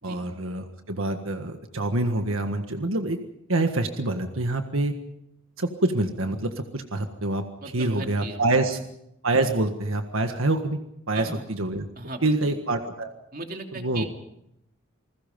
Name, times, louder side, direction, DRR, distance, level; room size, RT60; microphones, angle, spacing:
voice 1, 0.0-3.2 3.5-5.0 5.6-7.4 7.7-8.8 9.2-10.8 11.1-11.9 12.2-13.1 13.7-14.0, right 2 dB, 80° right, 6 dB, 1.6 m, -26 dB
voice 2, 7.6-8.6 11.1-11.4 12.0-12.5 13.3-14.0, right 2 dB, 45° right, 3 dB, 3.1 m, -37 dB
28.5 x 20.5 x 5.3 m, 0.80 s
head